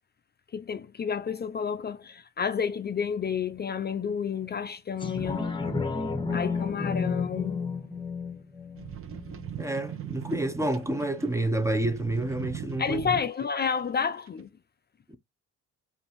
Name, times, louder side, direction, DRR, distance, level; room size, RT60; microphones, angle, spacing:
voice 1, 0.5-5.6 6.3-7.6 12.8-14.5, left 6 dB, 35° left, 0.5 m, -30 dB
sound 1, 5.0-10.0 10.5-10.6, left 4 dB, 15° left, 1.3 m, -32 dB
sound 2, 8.8-13.6 14.3-14.4, right 10 dB, 45° right, 0.8 m, -40 dB
voice 2, 9.6-13.0 15.1-15.2, right 1 dB, 10° right, 0.6 m, -29 dB
5.2 x 2.6 x 2.9 m
cardioid pair, 90°, 30 cm